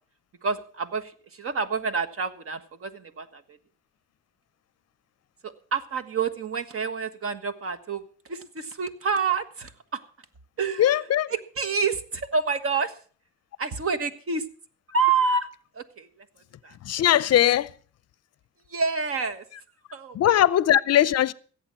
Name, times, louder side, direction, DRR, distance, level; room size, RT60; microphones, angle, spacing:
voice 1, 0.4-3.6 5.4-10.0 10.6-11.0 11.3-13.0 13.6-14.5 14.9-15.5 15.7-16.1 16.6-16.8 18.7-19.5 19.9-20.2, right 5 dB, 50° right, 1.4 m, -28 dB
voice 2, 10.8-11.3 16.8-17.7 20.1-21.3, left 11 dB, 55° left, 0.6 m, -20 dB
16.0 x 8.1 x 6.1 m
cardioid pair, 90°, 30 cm